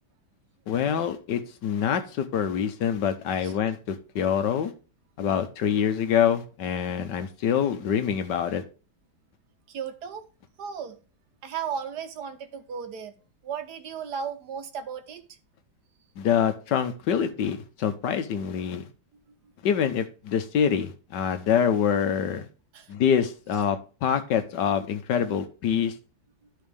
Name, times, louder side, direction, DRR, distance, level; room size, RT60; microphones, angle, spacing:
voice 1, 0.7-4.7 5.2-8.6 16.2-18.9 19.6-22.5 22.9-26.0, left 8 dB, 85° left, 1.6 m, -25 dB
voice 2, 9.7-10.2 10.6-11.0 11.4-13.1 13.4-15.2 22.7-22.9, right 7 dB, 70° right, 1.5 m, -35 dB
12.5 x 4.2 x 3.4 m
omnidirectional pair, 1.8 m